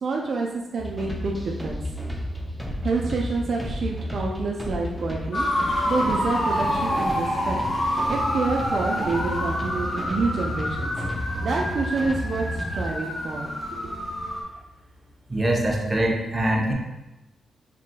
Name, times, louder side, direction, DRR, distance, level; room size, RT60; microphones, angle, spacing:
voice 1, 0.0-1.8 2.8-7.6 7.9-10.9 11.4-13.5, right 3 dB, 65° right, -1 dB, 0.5 m, -28 dB
sound 1, 0.8-12.9, equal, 5° left, 0.7 m, -33 dB
sound 2, 5.3-14.4, equal, 45° left, 1.1 m, -27 dB
voice 2, 15.3-16.7, right 1 dB, 25° right, -1 dB, 0.9 m, -23 dB
4.8 x 3.7 x 2.2 m, 0.99 s
cardioid pair, 65°, 0 cm